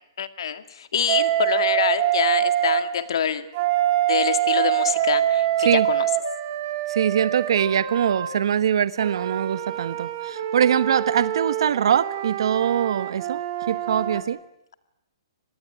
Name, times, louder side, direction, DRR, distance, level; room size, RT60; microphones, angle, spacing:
voice 1, 0.2-3.4 4.1-6.1, left 8 dB, 70° left, 10 dB, 2.1 m, -25 dB
Wind instrument woodwind instrument, 1.1-2.9 3.5-8.3 9.0-14.2, right 12 dB, 35° right, 3.8 m, -25 dB
voice 2, 6.9-13.4 13.7-14.4, right 9 dB, 65° right, 15 dB, 1.1 m, -22 dB
26.0 x 20.5 x 9.2 m, 0.79 s
hypercardioid pair, 160°, 3 cm